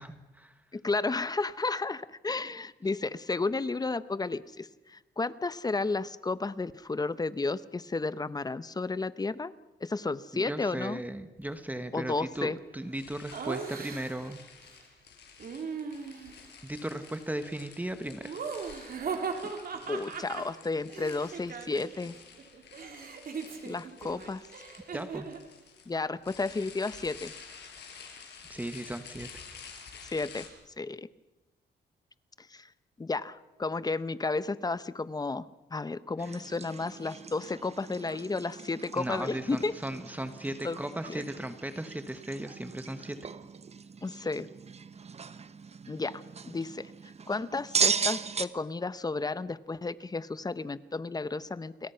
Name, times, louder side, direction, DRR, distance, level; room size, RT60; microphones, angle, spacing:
voice 1, 0.0-0.5 10.3-14.4 16.6-18.4 24.9-25.3 28.5-29.3 38.9-43.2, right 1 dB, 10° right, 9 dB, 1.4 m, -37 dB
voice 2, 0.7-9.5 9.8-11.0 11.9-12.6 19.4-19.5 19.9-22.1 23.6-24.4 25.9-27.3 30.0-30.4 30.8-31.1 32.4-32.7 33.0-35.4 35.7-39.8 40.6-40.8 41.1-41.2 44.0-44.5 45.9-46.9 47.3-51.9, left 3 dB, 20° left, 15 dB, 0.9 m, -32 dB
sound 1, 12.9-30.5, left 6 dB, 75° left, 5.7 m, -51 dB
Laughter, 13.3-14.4 15.4-16.4 18.2-22.1 22.4-25.5, right 5 dB, 55° right, 3.2 m, -38 dB
sound 2, 36.2-48.5, right 5 dB, 35° right, 1.1 m, -37 dB
29.5 x 22.0 x 5.8 m, 1.1 s
cardioid pair, 110°, 18 cm